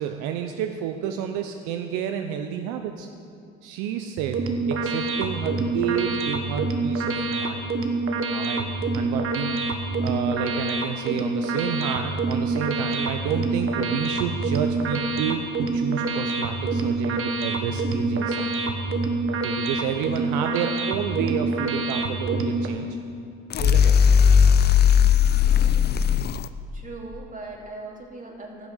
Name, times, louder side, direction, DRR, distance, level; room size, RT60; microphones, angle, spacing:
voice 1, 0.0-3.1 3.6-7.7 8.3-8.7 8.9-9.7 10.0-18.5 19.4-22.9 23.6-24.0, right 9 dB, 75° right, 6 dB, 0.8 m, -30 dB
sound 1, 4.2-22.7, right 3 dB, 45° right, 1.5 m, -26 dB
sound 2, 23.5-26.5, left 7 dB, 35° left, 0.5 m, -17 dB
voice 2, 26.7-28.7, right 3 dB, 25° right, -1 dB, 2.9 m, -39 dB
15.5 x 6.2 x 7.3 m, 2.4 s
supercardioid pair, 80°, 30 cm